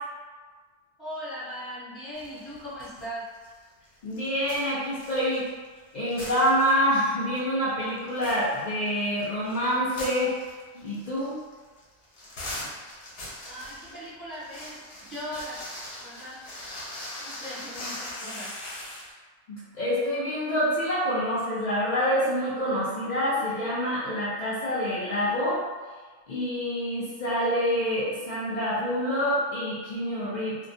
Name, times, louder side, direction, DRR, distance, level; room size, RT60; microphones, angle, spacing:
voice 1, 1.0-3.2 13.4-15.6 16.0-16.4 17.2-18.5, equal, ahead, -12 dB, 0.8 m, -39 dB
sound 1, 2.1-3.1 3.3-5.8 6.1-7.0 7.4-7.5 7.9-19.1, left 1 dB, 55° left, 0.7 m, -41 dB
voice 2, 4.0-5.5 5.9-10.4 10.7-11.4 19.5-25.6 26.3-30.6, equal, 80° left, -9 dB, 0.4 m, -26 dB
2.2 x 2.2 x 2.6 m, 1.4 s
omnidirectional pair, 1.4 m